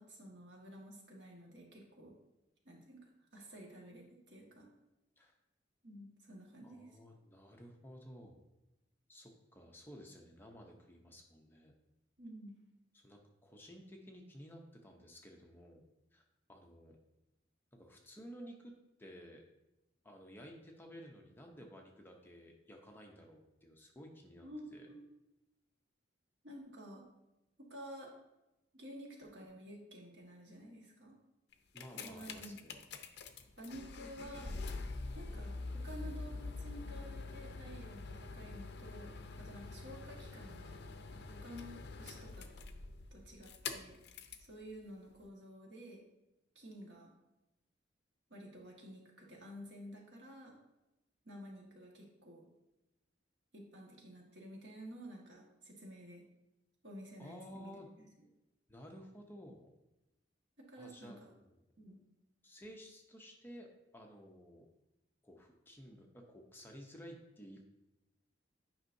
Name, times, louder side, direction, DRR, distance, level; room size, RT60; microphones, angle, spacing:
voice 1, 0.0-2.2 2.6-4.7 5.8-7.0 12.2-12.6 24.4-25.0 26.4-27.0 27.6-28.1 28.7-31.2 31.9-32.6 33.6-34.6 35.1-40.8 41.1-42.5 43.1-44.0 44.4-46.0 46.5-47.1 48.3-50.5 51.2-52.5 53.5-56.2 56.8-58.0 60.6-61.2 61.8-62.0, equal, 65° right, -2 dB, 1.6 m, -51 dB
voice 2, 6.6-8.4 9.1-11.7 12.9-15.9 16.1-16.2 16.5-17.0 17.7-18.7 19.0-19.4 20.0-24.5 24.7-24.9 31.7-32.8 57.2-57.9 58.7-59.7 60.8-61.5 62.4-64.7 65.2-67.6, equal, 10° left, 1 dB, 0.7 m, -54 dB
sound 1, 31.5-44.5 45.2-45.3, left 3 dB, 60° left, 0.5 m, -45 dB
9.2 x 5.4 x 2.7 m, 0.93 s
head